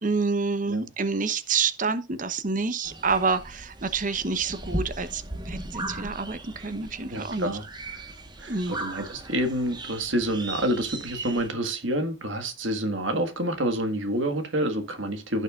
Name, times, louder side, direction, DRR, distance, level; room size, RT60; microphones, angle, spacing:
voice 1, 0.0-7.6 8.5-8.8, right 4 dB, 45° right, 0.9 m, -28 dB
sound 1, 2.8-11.5, right 2 dB, 25° right, 1.3 m, -37 dB
voice 2, 7.1-7.6 7.9-8.0 8.4-15.4, right 1 dB, 85° right, 1.7 m, -28 dB
15.5 x 6.4 x 2.5 m
head